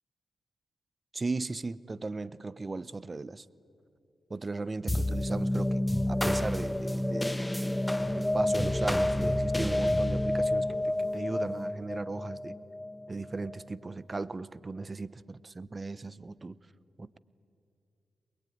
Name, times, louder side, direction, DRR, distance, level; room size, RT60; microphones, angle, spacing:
voice 1, 1.1-3.5 4.3-12.6 13.1-16.6 17.0-17.2, right 3 dB, 35° right, 19 dB, 0.7 m, -37 dB
sound 1, 4.9-13.6, left 1 dB, 10° left, 0.7 m, -29 dB
22.0 x 21.5 x 9.4 m, 2.7 s
cardioid pair, 55°, 0 cm